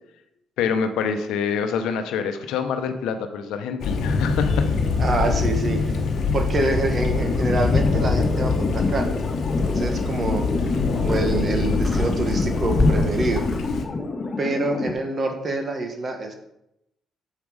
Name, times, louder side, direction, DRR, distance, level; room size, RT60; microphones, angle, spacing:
voice 1, 0.6-4.7, left 6 dB, 85° left, 8 dB, 0.8 m, -26 dB
Thunder, 3.8-13.8, left 4 dB, 65° left, 1.0 m, -24 dB
voice 2, 5.0-5.8 6.3-9.1 9.7-10.4 11.0-13.4 14.4-16.3, right 2 dB, 45° right, 5 dB, 1.5 m, -26 dB
sound 1, 7.0-14.9, left 3 dB, 40° left, 1.4 m, -28 dB
sound 2, 9.6-10.2 10.7-11.6 11.8-13.8, left 2 dB, 20° left, 1.4 m, -26 dB
7.4 x 5.2 x 4.8 m, 0.84 s
cardioid pair, 75°, 0 cm